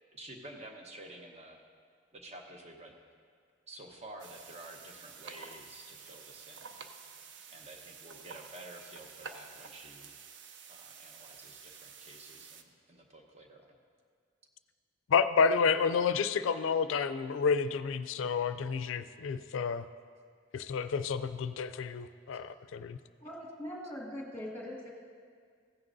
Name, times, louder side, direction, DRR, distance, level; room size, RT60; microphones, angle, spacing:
voice 1, 0.1-1.6 2.1-2.9 3.7-6.7 7.5-10.1 10.7-13.8, right 1 dB, 35° right, 2 dB, 1.0 m, -50 dB
sound 1, 4.2-12.6, right 5 dB, 65° right, 0.6 m, -50 dB
voice 2, 15.1-19.9 20.5-23.0, left 5 dB, 85° left, 12 dB, 0.4 m, -30 dB
voice 3, 23.2-24.9, left 1 dB, 10° left, -2 dB, 1.7 m, -41 dB
15.5 x 9.7 x 2.6 m, 2.1 s
head